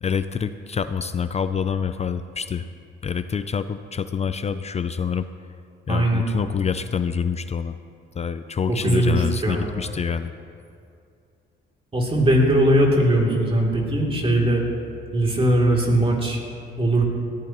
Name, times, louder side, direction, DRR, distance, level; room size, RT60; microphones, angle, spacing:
voice 1, 0.0-2.7 3.0-5.3 5.9-7.8 8.2-10.3, left 7 dB, 35° left, 11 dB, 0.4 m, -26 dB
voice 2, 5.9-6.3 8.7-9.7 11.9-14.6 15.1-16.4 16.8-17.1, right 1 dB, 30° right, -2 dB, 3.0 m, -20 dB
18.0 x 14.5 x 3.0 m, 2.5 s
cardioid pair, 90°, 20 cm